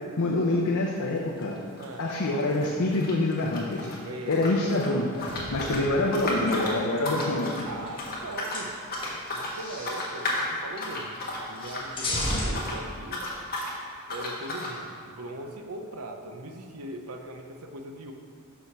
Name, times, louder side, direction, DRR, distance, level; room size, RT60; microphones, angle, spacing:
voice 1, 0.2-1.6 2.0-3.9 4.3-5.1 5.5-7.7, left 2 dB, 70° left, -2 dB, 0.7 m, -26 dB
sound 1, 1.0-1.2 1.4-4.0 4.3-12.8 13.0-13.7 14.1-14.7, left 1 dB, 45° left, 1.4 m, -34 dB
voice 2, 1.8-2.1 4.0-4.8 5.6-6.4 7.6-8.8 9.3-11.2 11.5-13.3 14.1-18.1, right 1 dB, 75° right, 4 dB, 0.7 m, -40 dB
sound 2, 5.1-6.6 7.4-8.2 8.5-10.2 10.8-10.9 11.2-12.5, left 1 dB, 25° left, 1.3 m, -35 dB
6.3 x 5.7 x 5.9 m, 2.2 s
head